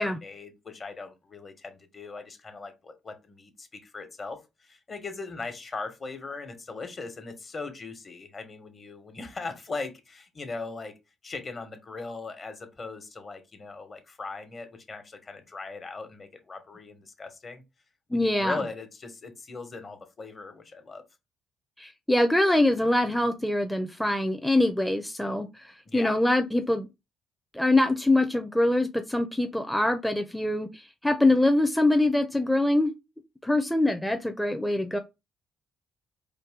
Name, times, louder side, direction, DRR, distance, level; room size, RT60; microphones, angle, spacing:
voice 1, 0.0-10.9 11.2-17.6 18.1-21.0 25.8-26.1, left 3 dB, 40° left, 1.3 m, -39 dB
voice 2, 18.1-18.6 21.8-26.9 27.5-32.9 33.4-35.0, left 1 dB, 5° left, 0.5 m, -24 dB
4.6 x 2.7 x 3.7 m
cardioid pair, 90°, 0 cm